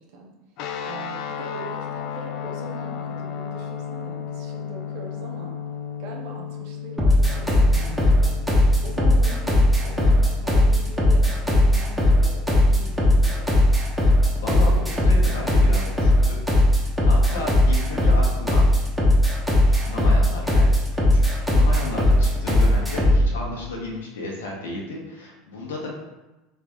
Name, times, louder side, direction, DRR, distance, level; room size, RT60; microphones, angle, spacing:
sound 1, 0.6-10.9, left 8 dB, 55° left, 0.4 m, -34 dB
voice 1, 0.8-5.5 6.0-8.3 8.8-13.5, right 2 dB, 60° right, 0 dB, 0.7 m, -40 dB
sound 2, 7.0-23.3, left 1 dB, 5° right, 1.0 m, -18 dB
voice 2, 14.4-16.4 16.7-18.6 19.7-25.9, left 2 dB, 70° left, -2 dB, 0.9 m, -33 dB
3.6 x 3.4 x 3.6 m, 1.1 s
figure-of-eight pair, 75°, 0 cm